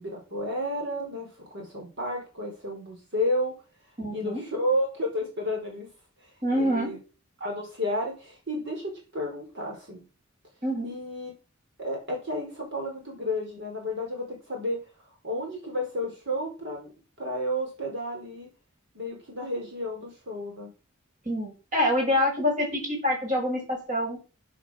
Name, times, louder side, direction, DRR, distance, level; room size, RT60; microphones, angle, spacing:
voice 1, 0.0-3.5 4.1-5.9 6.2-7.0 7.4-10.0 10.8-11.3 11.8-14.8 15.2-16.9 17.2-18.5 18.9-20.7, left 1 dB, 60° right, 1 dB, 5.0 m, -32 dB
voice 2, 4.0-4.4 6.4-6.9 10.6-10.9 21.2-24.2, left 1 dB, 40° right, 1 dB, 6.5 m, -26 dB
10.5 x 10.0 x 6.5 m, 0.34 s
head